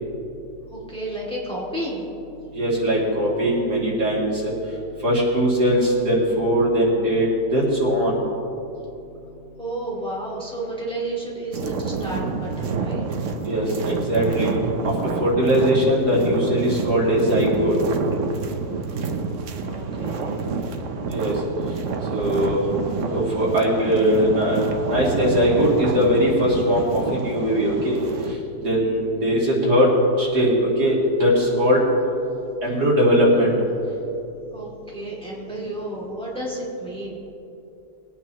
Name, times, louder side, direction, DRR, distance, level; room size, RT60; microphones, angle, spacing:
voice 1, 0.7-2.0 9.6-13.0 19.7-20.4 33.9-34.0 34.5-37.2, right 1 dB, 5° left, -5 dB, 2.3 m, -31 dB
voice 2, 2.5-4.5 5.0-8.2 13.4-14.5 14.8-14.9 15.2-17.7 21.1-21.3 22.1-22.6 23.1-28.0 28.6-29.9 30.2-30.5 30.8-31.8 32.6-33.5, equal, 90° right, -6 dB, 3.3 m, -20 dB
sound 1, 11.5-28.3, right 4 dB, 60° right, 1.0 m, -28 dB
20.5 x 9.1 x 3.0 m, 2.8 s
omnidirectional pair, 1.7 m